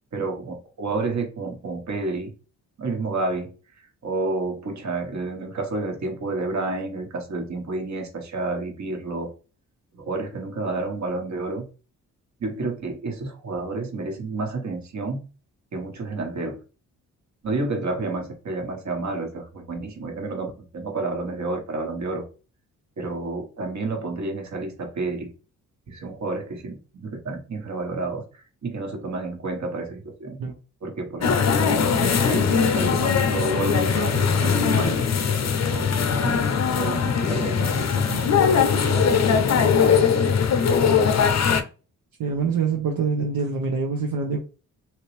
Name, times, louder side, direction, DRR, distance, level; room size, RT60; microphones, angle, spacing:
voice 1, 0.1-2.3 2.8-9.3 9.9-11.7 12.4-15.2 15.7-16.6 17.4-22.2 23.0-25.3 25.9-30.4 30.8-35.9 36.2-36.4 36.8-39.7, right 3 dB, 50° right, 3 dB, 1.3 m, -30 dB
sound 1, 31.2-41.6, left 6 dB, 45° left, 0.6 m, -20 dB
voice 2, 42.2-44.4, right 5 dB, 65° right, 1 dB, 0.7 m, -25 dB
2.9 x 2.8 x 3.2 m, 0.34 s
supercardioid pair, 50°, 37 cm